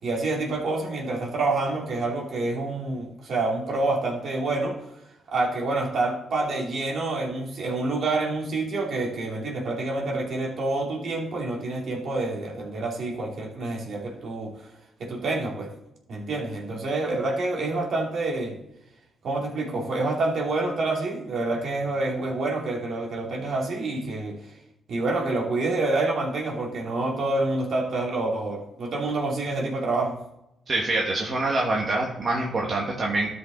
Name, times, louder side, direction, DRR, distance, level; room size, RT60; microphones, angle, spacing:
voice 1, 0.0-4.8 5.3-14.5 15.0-15.7 16.1-18.6 19.2-24.4 24.9-30.2, right 2 dB, 65° right, -1 dB, 2.5 m, -27 dB
voice 2, 30.7-33.3, right 2 dB, 45° right, -2 dB, 1.7 m, -25 dB
12.5 x 5.5 x 3.9 m, 0.84 s
supercardioid pair, 55°, 0 cm